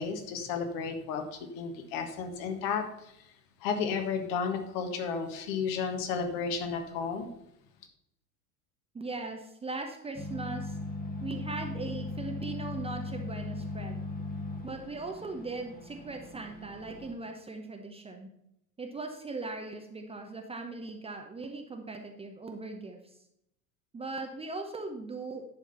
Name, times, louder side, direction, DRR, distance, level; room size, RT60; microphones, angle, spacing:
voice 1, 0.0-3.3 3.6-7.3, left 5 dB, 45° left, 5 dB, 1.6 m, -33 dB
voice 2, 8.9-10.8 11.2-14.0 14.6-18.3 18.8-23.2 23.9-25.5, right 3 dB, 10° right, 3 dB, 0.9 m, -39 dB
sound 1, 10.2-17.1, left 3 dB, 20° left, 1.4 m, -38 dB
10.5 x 5.1 x 5.6 m, 0.79 s
figure-of-eight pair, 80°, 48 cm